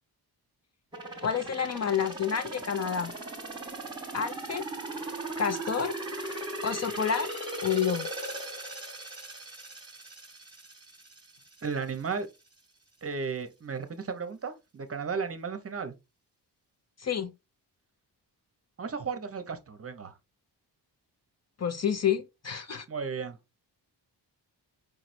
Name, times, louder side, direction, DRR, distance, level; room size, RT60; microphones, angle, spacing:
sound 1, 0.9-11.7 12.1-12.2, right 2 dB, 10° right, 1.0 m, -38 dB
voice 1, 1.2-3.1 4.1-4.6 5.4-6.0 6.6-7.3 7.6-8.1 17.0-17.3 21.6-22.9, left 7 dB, 40° left, 0.4 m, -29 dB
voice 2, 11.6-12.3 13.0-15.9 18.8-20.1 22.9-23.4, right 5 dB, 35° right, 0.7 m, -34 dB
5.0 x 3.1 x 2.5 m
wide cardioid pair, 130°, 41 cm